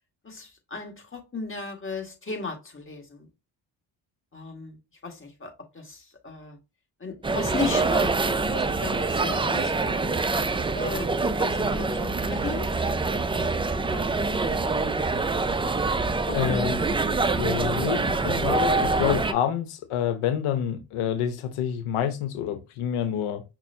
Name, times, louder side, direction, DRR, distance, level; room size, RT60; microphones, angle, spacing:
voice 1, 0.2-3.3 4.3-4.8 5.0-6.6 7.0-10.1 10.7-11.1 11.3-12.7 13.4-13.5 13.9-14.8 15.4-15.8 16.3-16.6, left 3 dB, 25° left, 1.8 m, -36 dB
sound 1, 7.2-19.3, right 3 dB, 10° right, 0.4 m, -25 dB
voice 2, 16.3-16.8 17.2-23.4, left 9 dB, 75° left, 0.9 m, -28 dB
5.9 x 2.1 x 2.8 m
supercardioid pair, 55°, 50 cm